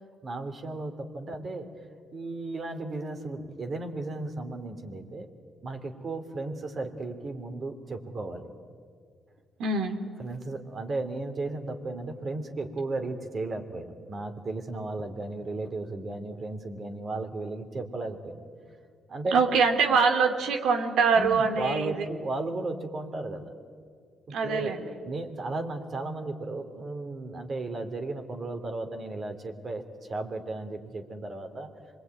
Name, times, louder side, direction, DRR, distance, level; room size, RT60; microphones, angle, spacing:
voice 1, 0.2-1.7 2.1-5.3 5.6-8.5 10.2-18.4 19.1-19.4 21.1-23.5 24.3-24.7 25.0-31.7, right 2 dB, 45° right, 6 dB, 3.3 m, -35 dB
voice 2, 9.6-9.9 19.3-21.9 24.3-24.9, right 5 dB, 80° right, 5 dB, 2.6 m, -23 dB
26.0 x 21.5 x 9.4 m, 2.1 s
cardioid pair, 90°, 0 cm